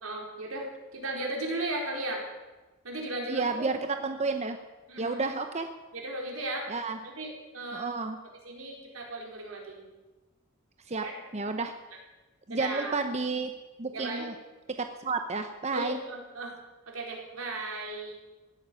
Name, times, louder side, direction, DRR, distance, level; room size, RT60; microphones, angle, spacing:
voice 1, 0.0-2.2 2.8-3.7 4.9-5.2 5.9-6.7 7.0-7.3 7.5-8.0 8.4-9.9 11.0-11.1 12.5-12.9 13.9-14.2 15.7-16.5 16.9-18.1, right 2 dB, 80° right, -1 dB, 4.5 m, -36 dB
voice 2, 3.3-4.6 5.0-5.7 6.7-7.0 7.7-8.2 10.9-11.0 11.3-11.7 12.5-13.5 13.8-14.3 14.7-16.0, right 3 dB, 30° right, 7 dB, 0.8 m, -31 dB
16.5 x 9.4 x 9.3 m, 1.2 s
head